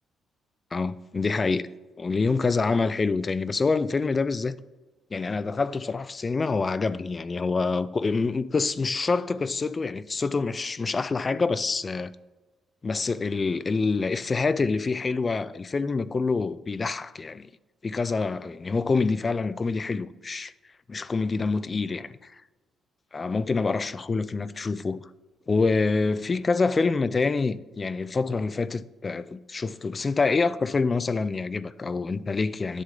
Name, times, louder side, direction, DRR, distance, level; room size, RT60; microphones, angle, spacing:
voice 1, 0.7-1.6 2.0-4.6 5.1-12.1 12.8-17.5 17.8-20.5 20.9-22.1 23.1-25.1 25.5-32.8, left 4 dB, 30° left, 0.4 m, -26 dB
10.0 x 3.7 x 5.3 m
cardioid pair, 90°, 0 cm